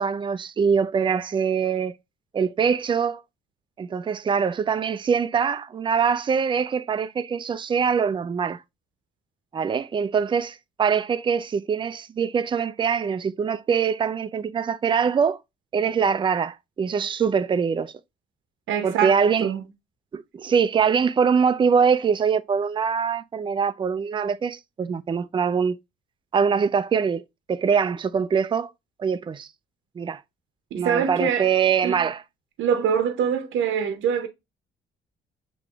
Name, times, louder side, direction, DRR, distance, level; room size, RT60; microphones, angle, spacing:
voice 1, 0.0-2.0 2.3-3.2 3.8-8.6 9.5-15.4 15.7-17.9 18.8-19.5 20.1-25.8 26.3-28.7 29.0-29.5 30.0-30.2 30.7-32.2, right 6 dB, 25° right, 0.4 m, -23 dB
voice 2, 18.7-19.6 30.7-31.5 31.8-32.0 32.6-34.3, right 8 dB, 80° right, 0.7 m, -24 dB
6.0 x 3.0 x 2.3 m
cardioid pair, 90°, 20 cm